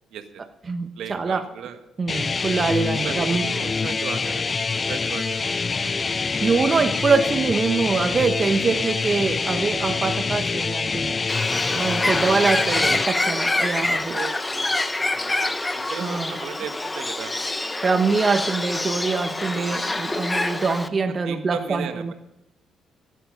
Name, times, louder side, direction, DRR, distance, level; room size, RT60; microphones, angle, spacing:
voice 1, 0.1-0.4 1.0-1.8 3.0-5.5 11.6-12.6 14.1-17.4 19.4-19.8 21.0-22.1, right 8 dB, 80° right, 7 dB, 1.5 m, -37 dB
voice 2, 0.7-1.4 2.0-3.5 6.4-11.2 11.7-14.2 15.0-15.1 16.0-16.3 17.8-22.1, right 4 dB, 40° right, 8 dB, 1.0 m, -24 dB
sound 1, 2.1-13.1, left 4 dB, 35° left, 0.4 m, -25 dB
Bird, 11.3-20.9, left 2 dB, 15° left, 1.0 m, -26 dB
16.5 x 8.5 x 5.4 m, 0.89 s
cardioid pair, 90°, 0 cm